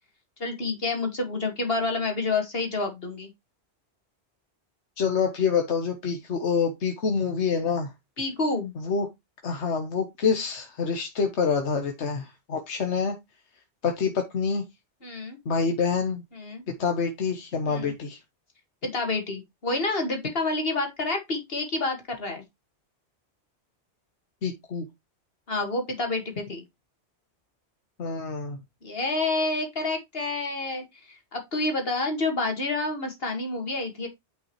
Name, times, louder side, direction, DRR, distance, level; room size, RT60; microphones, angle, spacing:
voice 1, 0.4-3.3 8.2-8.7 15.0-15.4 16.3-16.6 17.7-17.9 18.8-22.4 25.5-26.6 28.8-34.1, left 3 dB, 60° left, 2.2 m, -28 dB
voice 2, 5.0-7.9 8.8-9.1 9.4-13.2 13.8-14.7 15.4-16.2 16.8-18.2 24.4-24.8 28.0-28.6, left 5 dB, 75° left, 1.4 m, -26 dB
9.1 x 5.4 x 3.1 m
omnidirectional pair, 1.1 m